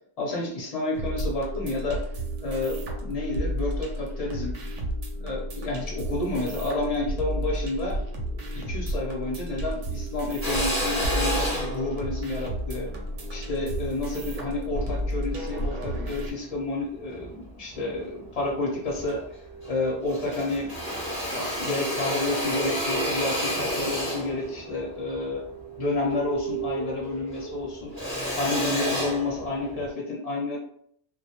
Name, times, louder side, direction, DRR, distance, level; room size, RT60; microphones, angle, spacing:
voice 1, 0.2-2.0 2.4-4.5 5.2-8.0 8.5-12.9 13.3-19.2 19.7-20.8 21.2-25.4 25.8-28.0 28.4-30.6, left 2 dB, 45° left, -2 dB, 0.5 m, -30 dB
sound 1, 0.9-16.3, equal, 90° right, 0.9 m, -32 dB
Drill, 10.4-14.9 15.5-16.7 17.1-18.1 18.4-18.5 18.8-19.8 20.0-26.7 27.0-29.9, equal, 20° right, 0.7 m, -31 dB
sound 2, 19.3-22.4 22.8-28.1, right 10 dB, 55° right, 0.8 m, -40 dB
2.1 x 2.0 x 2.8 m, 0.68 s
omnidirectional pair, 1.2 m